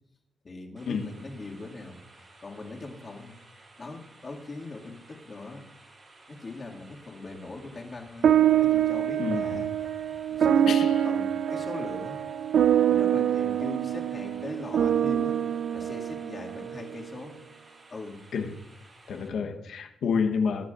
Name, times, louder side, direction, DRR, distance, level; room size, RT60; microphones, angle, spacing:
voice 1, 0.4-3.4 3.8-5.6 6.3-9.7 10.0-10.7 11.0-12.2 12.9-15.4 15.7-17.4 17.9-18.2 19.2-19.6, left 3 dB, 35° left, -2 dB, 2.2 m, -41 dB
sound 1, 0.8-19.3, right 2 dB, 40° right, 3.9 m, -55 dB
sound 2, 8.2-16.9, right 10 dB, 70° right, 0.4 m, -25 dB
voice 2, 9.2-9.7 10.7-11.1 18.3-18.6 19.1-20.7, left 5 dB, 80° left, 5 dB, 1.1 m, -29 dB
21.5 x 10.0 x 2.5 m, 0.91 s
wide cardioid pair, 135°, 0 cm